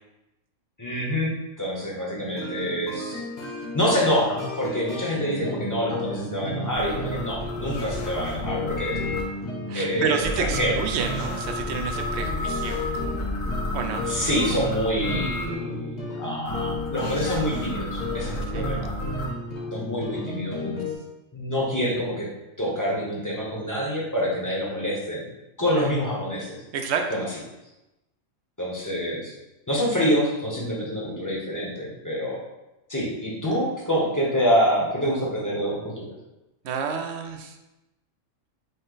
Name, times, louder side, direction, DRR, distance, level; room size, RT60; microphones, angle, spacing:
voice 1, 0.8-3.2 3.7-9.0 9.7-10.8 14.1-18.9 19.7-20.8 21.3-22.3 22.6-25.3 25.6-26.6 27.1-27.3 28.6-29.3 29.7-32.4 32.9-36.1, equal, 20° left, -4 dB, 0.7 m, -26 dB
sound 1, 2.2-20.9, left 1 dB, 35° left, 1.0 m, -33 dB
sound 2, 6.7-9.2 10.2-15.5 16.4-19.3, left 1 dB, 80° left, 1.1 m, -32 dB
voice 2, 9.7-12.8 13.7-14.0 18.5-18.7 25.8-25.9 26.7-27.0 36.6-37.5, right 6 dB, 65° right, 4 dB, 0.8 m, -29 dB
5.3 x 2.1 x 3.8 m, 0.97 s
omnidirectional pair, 1.3 m